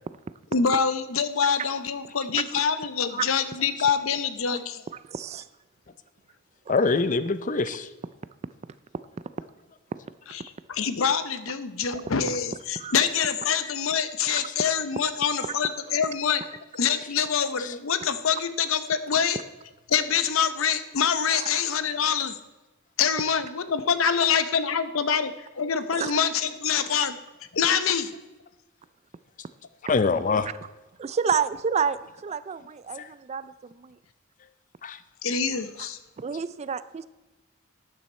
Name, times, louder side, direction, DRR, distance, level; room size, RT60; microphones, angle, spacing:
voice 1, 0.5-4.8 10.3-16.4 16.7-19.4 19.9-22.4 23.0-27.2 27.5-28.1 35.2-36.0, left 7 dB, 80° left, 12 dB, 0.7 m, -25 dB
voice 2, 5.1-5.4 12.8-12.9 14.3-14.4 21.4-21.5 26.0-26.1 31.0-33.9 36.2-37.0, right 6 dB, 30° right, 15 dB, 0.3 m, -29 dB
voice 3, 6.7-7.9 29.9-30.5 33.0-33.1 34.8-35.0, left 4 dB, 40° left, 12 dB, 0.5 m, -24 dB
12.0 x 9.2 x 4.3 m, 1.1 s
head